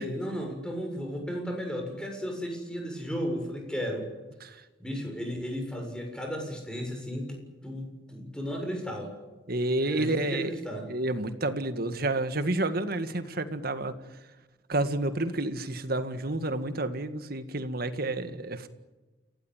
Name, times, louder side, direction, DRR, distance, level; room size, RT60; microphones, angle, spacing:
voice 1, 0.0-4.1 4.8-9.1 9.8-10.8, equal, 5° left, 2 dB, 7.1 m, -34 dB
voice 2, 9.5-10.5 10.9-13.9 14.7-18.7, right 2 dB, 55° right, 10 dB, 1.9 m, -30 dB
29.0 x 17.0 x 9.2 m, 1.2 s
head